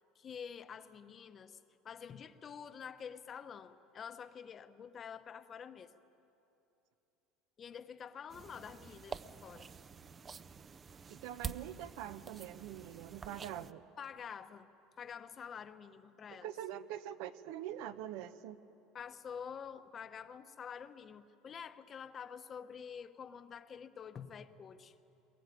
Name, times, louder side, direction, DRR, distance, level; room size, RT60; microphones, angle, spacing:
voice 1, 0.2-1.6 1.8-5.9 7.6-9.7 14.0-14.7 15.0-16.5 18.9-24.9, left 7 dB, 30° left, 11 dB, 0.9 m, -48 dB
sound 1, 8.3-13.7, right 6 dB, 25° right, 0.5 m, -48 dB
voice 2, 11.1-13.8 16.3-18.6, right 11 dB, 70° right, 12 dB, 1.0 m, -44 dB
22.5 x 21.5 x 9.3 m, 2.8 s
cardioid pair, 140°, 0 cm